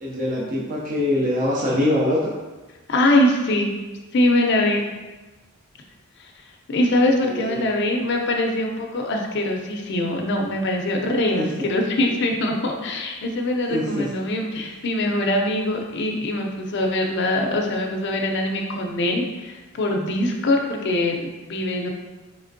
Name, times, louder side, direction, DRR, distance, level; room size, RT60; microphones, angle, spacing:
voice 1, 0.0-2.3 7.2-7.7 11.4-11.7 13.7-14.1 14.6-14.7, left 1 dB, 35° right, -5 dB, 0.5 m, -23 dB
voice 2, 2.9-3.7 4.1-4.9 6.2-6.3 6.7-21.9, left 1 dB, 50° left, 2 dB, 0.5 m, -23 dB
4.2 x 3.1 x 2.6 m, 1.2 s
head